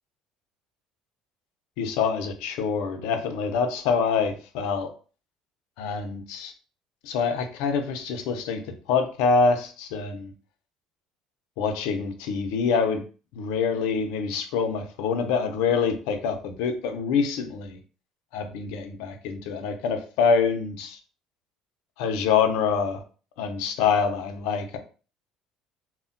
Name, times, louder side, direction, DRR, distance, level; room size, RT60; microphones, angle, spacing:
voice 1, 1.8-4.9 5.8-6.5 7.0-8.6 8.9-10.3 11.6-13.0 13.3-17.8 18.3-21.0 22.0-23.0 23.4-24.8, left 5 dB, 85° left, 6 dB, 0.5 m, -25 dB
2.1 x 2.1 x 3.7 m, 0.37 s
cardioid pair, 170°, 0 cm